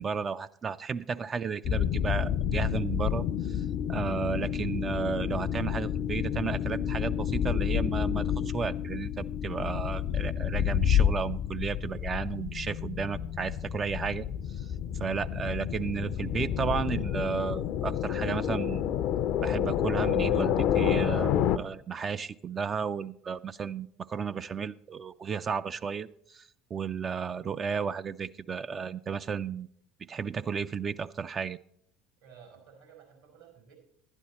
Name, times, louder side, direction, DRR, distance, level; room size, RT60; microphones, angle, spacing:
voice 1, 0.0-14.3 14.6-14.7 15.0-18.8 19.4-29.7 30.1-31.6, right 6 dB, 35° right, 12 dB, 0.3 m, -33 dB
sound 1, 1.6-21.6, left 9 dB, 55° left, 0.5 m, -29 dB
voice 2, 32.2-33.7, right 7 dB, 75° right, 1 dB, 4.5 m, -54 dB
11.5 x 9.9 x 4.2 m, 0.70 s
hypercardioid pair, 65°, 0 cm